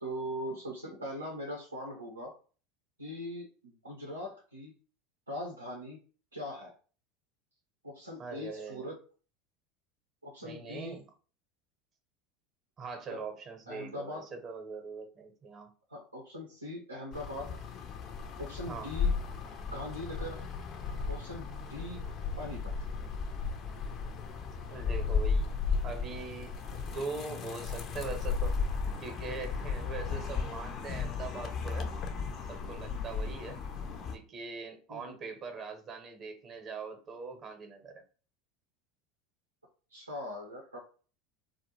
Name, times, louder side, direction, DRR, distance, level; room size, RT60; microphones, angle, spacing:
voice 1, 0.0-2.3 3.0-4.7 5.3-6.0 6.3-6.7 7.8-9.0 10.2-11.0 13.1-13.2 13.7-14.3 15.9-17.6 18.4-19.1 19.7-20.4 21.1-22.0 22.4-22.9 30.1-30.2 33.2-33.4 34.9-35.2 39.9-40.8, equal, 90° right, -1 dB, 0.5 m, -41 dB
voice 2, 8.2-8.9 10.4-11.1 12.8-15.7 18.7-18.9 24.7-25.5 25.8-28.5 29.0-31.9 32.5-33.6 34.1-38.0, right 4 dB, 35° right, 4 dB, 0.7 m, -42 dB
sound 1, 17.1-34.2, left 5 dB, 40° left, 0.4 m, -35 dB
2.2 x 2.0 x 2.9 m, 0.38 s
figure-of-eight pair, 80°, 0 cm